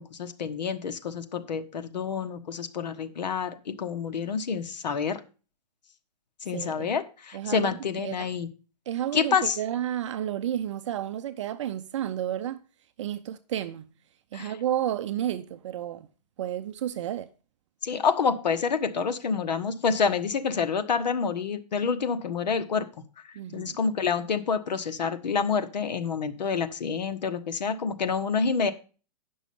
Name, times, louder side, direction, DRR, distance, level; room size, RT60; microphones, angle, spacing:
voice 1, 0.0-5.2 6.4-8.5 9.1-9.6 14.3-14.5 17.8-22.9 23.5-28.7, left 5 dB, 80° left, 1.3 m, -28 dB
voice 2, 6.5-6.9 7.3-7.7 8.0-8.3 8.9-12.6 13.0-13.9 14.3-16.1 16.4-17.3 23.3-23.8, right 11 dB, 45° right, 0.6 m, -31 dB
9.6 x 6.2 x 5.3 m
hypercardioid pair, 150°, 21 cm